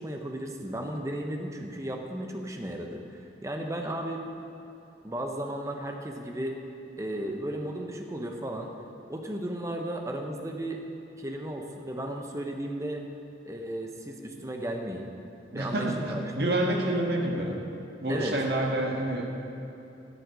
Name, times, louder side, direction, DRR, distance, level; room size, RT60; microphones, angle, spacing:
voice 1, 0.0-4.2 5.0-6.6 7.0-8.7 9.1-10.8 11.2-13.1 13.5-15.1 15.5-16.6 18.1-18.4, right 1 dB, 15° right, 3 dB, 0.9 m, -35 dB
voice 2, 15.5-17.6 18.0-19.3, right 1 dB, 60° right, 0 dB, 1.7 m, -28 dB
11.5 x 7.6 x 8.3 m, 2.9 s
head